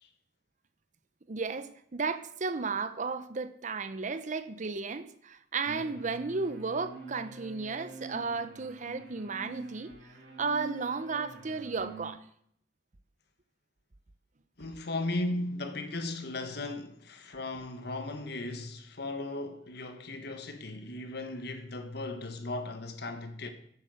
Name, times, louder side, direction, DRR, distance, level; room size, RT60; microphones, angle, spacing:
voice 1, 1.3-9.9 10.4-12.2, right 4 dB, 40° right, 0.7 m, -34 dB
sound 1, 5.6-12.1, right 3 dB, 70° right, 2.5 m, -46 dB
voice 2, 14.6-23.5, left 2 dB, 65° left, 1.5 m, -36 dB
9.7 x 8.7 x 6.6 m
head